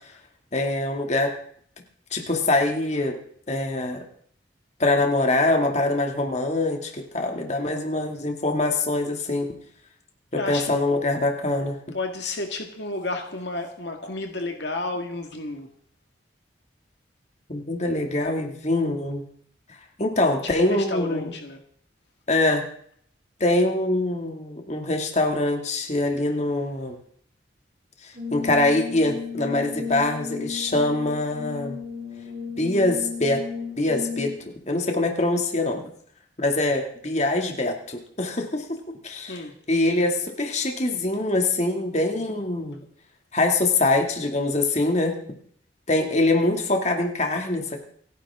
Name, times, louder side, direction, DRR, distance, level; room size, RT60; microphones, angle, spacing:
voice 1, 0.5-1.3 2.1-3.1 3.5-4.0 4.8-9.5 10.3-11.8 17.5-19.2 20.0-21.3 22.3-22.6 23.4-27.0 28.0-31.8 32.6-33.4 33.8-34.3 34.7-35.9 36.4-38.6 39.0-39.4 39.7-42.8 43.3-45.1 45.9-47.8, left 2 dB, 35° left, 3 dB, 2.4 m, -24 dB
voice 2, 10.4-10.7 11.9-15.7 20.4-21.6 39.3-39.5, left 2 dB, 65° left, 4 dB, 1.9 m, -31 dB
Brass instrument, 28.2-34.6, left 5 dB, 40° right, 3.0 m, -34 dB
29.0 x 10.5 x 3.7 m, 0.62 s
head